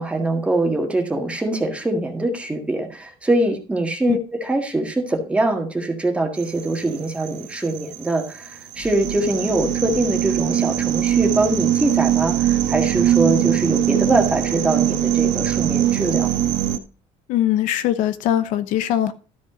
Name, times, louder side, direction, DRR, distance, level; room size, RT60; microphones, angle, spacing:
voice 1, 0.0-16.3, right 2 dB, 10° right, 2 dB, 1.7 m, -23 dB
sound 1, 6.4-16.8, right 11 dB, 80° right, 1.4 m, -22 dB
voice 2, 17.3-19.1, left 12 dB, 80° left, 11 dB, 0.9 m, -21 dB
12.5 x 5.4 x 4.9 m, 0.36 s
cardioid pair, 160°, 13 cm